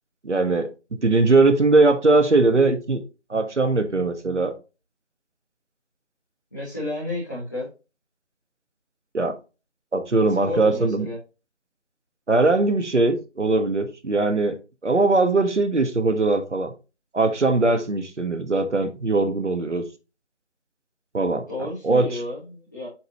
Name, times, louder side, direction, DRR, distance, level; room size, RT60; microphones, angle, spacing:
voice 1, 0.2-0.7 1.0-3.0 3.3-4.5 9.1-9.3 9.9-11.1 12.3-14.5 14.8-16.7 17.1-19.8 21.1-21.4 21.8-22.0, right 3 dB, 80° right, 8 dB, 1.4 m, -20 dB
voice 2, 6.5-7.7 10.4-11.2 21.5-22.9, left 1 dB, 15° left, -13 dB, 1.8 m, -31 dB
7.8 x 5.0 x 2.9 m, 0.30 s
figure-of-eight pair, 175°, 35 cm